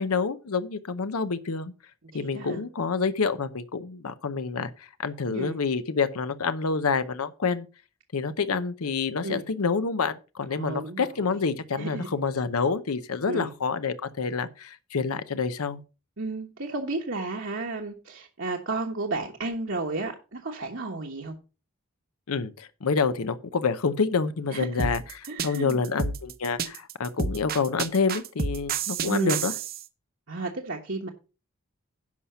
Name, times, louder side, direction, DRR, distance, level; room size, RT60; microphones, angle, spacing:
voice 1, 0.0-1.7 2.1-7.7 8.1-15.8 22.3-25.0 25.4-29.5, left 5 dB, 90° left, 0.7 m, -28 dB
voice 2, 2.0-2.6 5.3-5.6 9.2-9.5 10.5-11.4 11.8-12.1 13.3-13.5 16.2-21.3 24.5-24.9 25.3-25.8 29.1-29.4 30.3-31.1, right 2 dB, 60° right, 1.2 m, -33 dB
sound 1, 24.8-29.8, right 5 dB, 40° right, 0.8 m, -30 dB
11.0 x 5.7 x 5.6 m
head